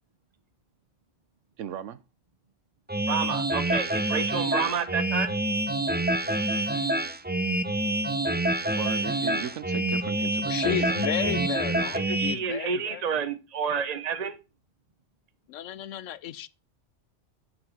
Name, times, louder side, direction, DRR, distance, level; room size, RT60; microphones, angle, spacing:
voice 1, 1.6-2.0 8.8-11.0, right 9 dB, 80° right, 1.0 m, -37 dB
sound 1, 2.9-12.4, right 1 dB, 10° right, 0.5 m, -27 dB
voice 2, 3.1-5.3 11.9-14.4, right 6 dB, 35° right, 1.0 m, -30 dB
voice 3, 10.5-13.0 15.5-16.5, left 11 dB, 80° left, 1.0 m, -33 dB
10.5 x 3.9 x 6.3 m
omnidirectional pair, 1.3 m